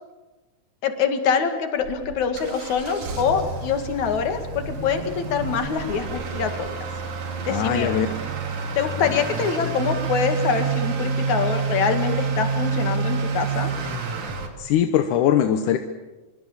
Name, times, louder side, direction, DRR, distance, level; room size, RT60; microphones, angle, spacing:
voice 1, 0.8-6.8 7.5-7.9 8.8-13.7, left 6 dB, 70° left, 6 dB, 3.4 m, -25 dB
Motor vehicle (road) / Accelerating revving vroom, 1.8-14.5, right 5 dB, 70° right, 3.7 m, -28 dB
voice 2, 7.5-8.2 14.6-15.8, left 10 dB, 85° left, 8 dB, 2.5 m, -21 dB
26.0 x 23.0 x 7.3 m, 1.2 s
omnidirectional pair, 3.5 m